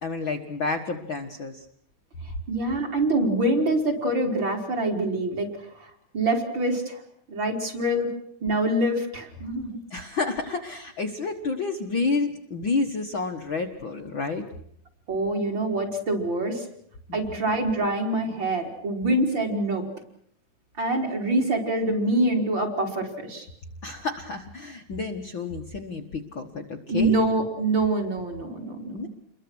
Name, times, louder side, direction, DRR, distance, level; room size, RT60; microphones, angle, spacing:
voice 1, 0.0-1.7 9.9-14.4 17.1-17.4 23.8-27.2 28.9-29.1, left 4 dB, 45° left, 3 dB, 1.9 m, -30 dB
voice 2, 2.5-5.5 5.8-7.0 7.3-8.1 8.4-9.8 15.1-16.6 17.1-19.9 20.8-23.5 26.9-28.9, right 1 dB, 35° right, 2 dB, 4.9 m, -25 dB
29.5 x 22.5 x 6.3 m, 0.70 s
omnidirectional pair, 3.7 m